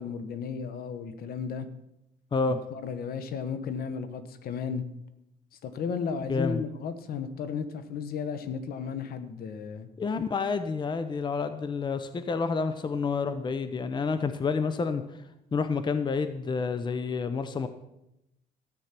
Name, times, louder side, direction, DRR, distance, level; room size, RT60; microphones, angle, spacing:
voice 1, 0.0-1.7 2.5-4.8 5.6-9.9, left 6 dB, 65° left, 11 dB, 1.2 m, -34 dB
voice 2, 6.3-6.6 10.0-15.0 15.5-17.7, left 4 dB, 25° left, 11 dB, 0.8 m, -29 dB
13.5 x 8.4 x 6.0 m, 0.86 s
cardioid pair, 110°, 17 cm